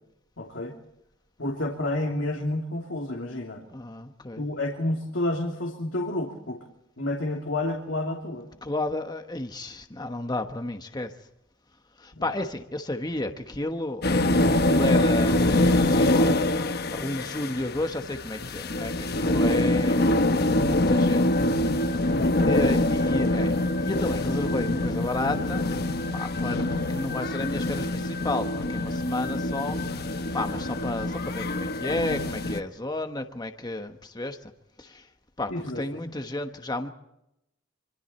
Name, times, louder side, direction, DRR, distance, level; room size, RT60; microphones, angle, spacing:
voice 1, 0.4-0.7 1.4-3.6 4.4-6.6 7.0-8.5 12.1-12.4 22.1-22.7 35.5-36.1, left 1 dB, 70° left, 0 dB, 3.0 m, -30 dB
voice 2, 3.7-4.5 8.6-11.1 12.0-20.1 20.5-21.3 21.7-22.0 22.5-25.7 26.1-30.0 30.3-34.5 34.8-35.1 35.4-36.9, left 2 dB, 20° left, 6 dB, 1.2 m, -32 dB
sound 1, 14.0-32.6, left 1 dB, 55° left, 1.2 m, -25 dB
26.0 x 25.5 x 4.4 m, 0.84 s
head